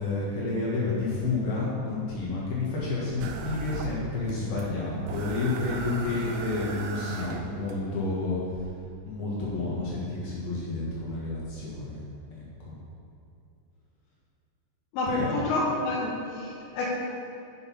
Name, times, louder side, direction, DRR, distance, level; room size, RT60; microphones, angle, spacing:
voice 1, 0.0-8.4 9.1-12.0 12.3-12.7 15.1-15.4, left 3 dB, 60° left, -6 dB, 3.1 m, -30 dB
sound 1, 3.2-4.3 4.6-4.7 5.1-7.7 8.5-8.7, right 3 dB, 85° right, 2.5 m, -36 dB
voice 2, 14.9-16.9, left 2 dB, 80° left, -6 dB, 3.3 m, -29 dB
8.0 x 6.5 x 5.5 m, 2.8 s
omnidirectional pair, 5.3 m